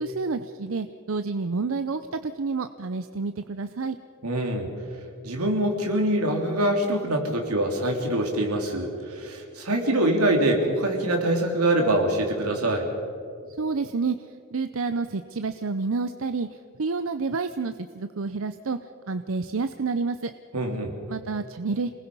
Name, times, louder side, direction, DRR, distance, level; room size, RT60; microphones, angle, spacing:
voice 1, 0.0-4.0 13.6-14.2 14.5-16.5 16.8-18.8 19.1-20.3 21.1-21.9, right 4 dB, 65° right, 10 dB, 0.6 m, -29 dB
voice 2, 4.2-4.7 5.2-12.9 20.5-20.9, right 1 dB, 85° right, 2 dB, 3.4 m, -24 dB
27.5 x 20.0 x 5.5 m, 2.5 s
head